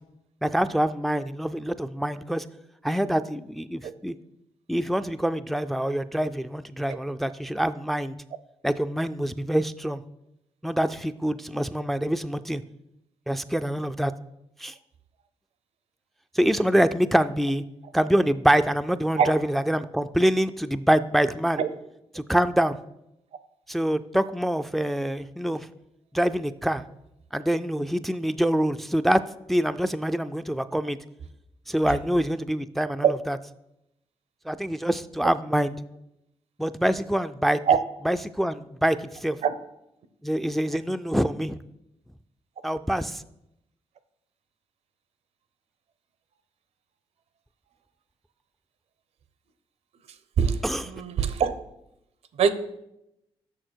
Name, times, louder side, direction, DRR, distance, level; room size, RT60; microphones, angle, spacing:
voice 1, 0.4-2.4 2.8-4.2 4.7-8.2 8.6-10.0 10.6-12.6 13.3-14.1 14.6-14.7 16.3-17.6 17.9-21.6 22.1-22.8 23.7-25.7 26.1-26.8 27.3-29.2 29.5-31.0 31.7-33.4 34.5-35.7 36.6-37.6 38.0-39.4 40.2-41.6 42.6-43.2 50.6-50.9, right 1 dB, ahead, 11 dB, 0.3 m, -25 dB
voice 2, 50.4-51.6 52.4-52.5, right 7 dB, 75° right, 13 dB, 0.6 m, -22 dB
6.4 x 6.1 x 4.6 m, 0.84 s
cardioid pair, 65°, 11 cm